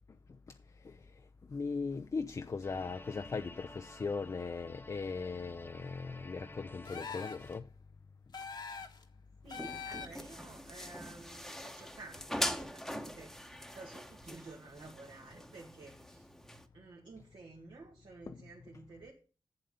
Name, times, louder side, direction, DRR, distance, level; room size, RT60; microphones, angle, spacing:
voice 1, 1.5-7.7 18.3-18.5, left 4 dB, 45° left, 0.5 m, -39 dB
sound 1, 2.6-7.6, left 2 dB, 25° left, 1.0 m, -52 dB
sound 2, 6.8-7.5 8.3-9.0 9.5-10.3, left 5 dB, 65° left, 1.3 m, -43 dB
sound 3, 9.4-16.7, equal, 5° left, 1.0 m, -42 dB
voice 2, 9.4-16.3 16.7-19.1, right 3 dB, 75° right, 2.1 m, -52 dB
7.9 x 7.8 x 5.5 m
cardioid pair, 65°, 8 cm